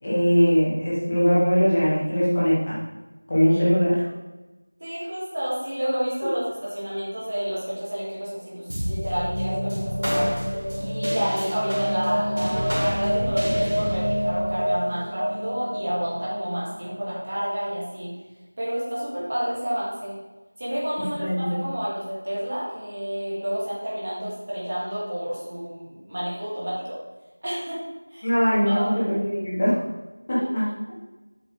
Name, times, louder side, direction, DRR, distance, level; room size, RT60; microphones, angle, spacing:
voice 1, 0.0-2.8 3.3-4.0 21.2-21.6 28.2-29.8 30.3-30.7, equal, 10° left, -9 dB, 1.0 m, -21 dB
voice 2, 4.8-10.4 10.8-18.1 18.6-20.2 20.6-27.0 27.4-27.8 28.1-28.3 28.6-29.0 30.4-30.7, equal, 20° right, -8 dB, 1.7 m, -30 dB
sound 1, 8.7-17.4, equal, 55° right, 2.6 m, -27 dB
8.0 x 7.0 x 3.5 m, 1.1 s
figure-of-eight pair, 180°, 0 cm